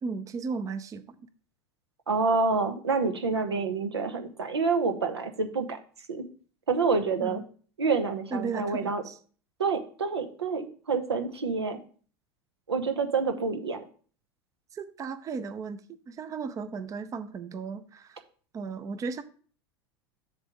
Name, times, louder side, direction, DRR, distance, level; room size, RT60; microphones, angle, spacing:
voice 1, 0.0-1.0 7.2-7.4 8.3-9.2 14.7-15.8 16.1-18.2 18.5-19.2, right 5 dB, 25° right, 13 dB, 0.6 m, -35 dB
voice 2, 2.1-5.8 6.1-6.2 6.7-7.4 7.8-9.0 9.6-11.8 12.7-13.8, right 4 dB, 80° right, 6 dB, 1.0 m, -27 dB
7.2 x 3.4 x 6.3 m, 0.42 s
figure-of-eight pair, 80°, 14 cm